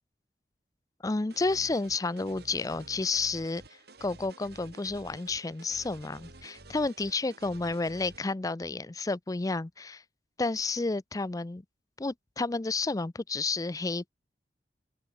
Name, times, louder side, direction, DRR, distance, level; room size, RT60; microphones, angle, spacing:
voice 1, 1.0-3.6 4.0-10.0 10.4-11.6 12.0-14.1, left 3 dB, 20° left, 0.5 m, -31 dB
sound 1, 1.3-8.2, right 2 dB, 65° right, 4.1 m, -51 dB
open air
head